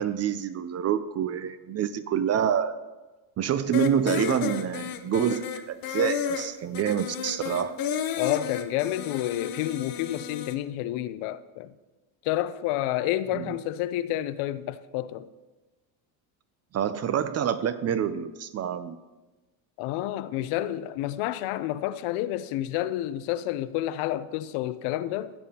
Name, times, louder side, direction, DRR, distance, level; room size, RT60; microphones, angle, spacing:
voice 1, 0.0-2.8 3.4-7.8 13.3-13.5 16.7-19.0, right 8 dB, 35° right, 0.4 m, -27 dB
sound 1, 3.7-10.5, left 8 dB, 45° left, 0.7 m, -32 dB
voice 2, 8.2-11.7 12.2-15.3 19.8-25.3, left 13 dB, 85° left, 0.6 m, -29 dB
15.5 x 7.5 x 2.8 m
cardioid pair, 115°, 48 cm